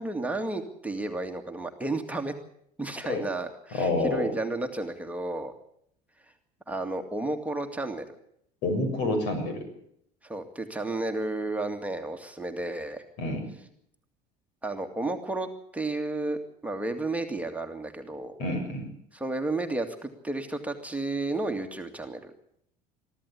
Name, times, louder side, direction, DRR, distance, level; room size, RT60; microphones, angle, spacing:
voice 1, 0.0-2.3 2.8-5.5 6.7-8.1 10.2-13.0 14.6-15.5 15.7-18.3 19.1-22.3, right 2 dB, 5° right, 4 dB, 2.2 m, -32 dB
voice 2, 3.7-4.3 8.6-9.6 13.2-13.4 18.4-18.9, left 2 dB, 60° left, 7 dB, 6.9 m, -28 dB
23.5 x 14.0 x 8.5 m, 0.71 s
hypercardioid pair, 70°, 20 cm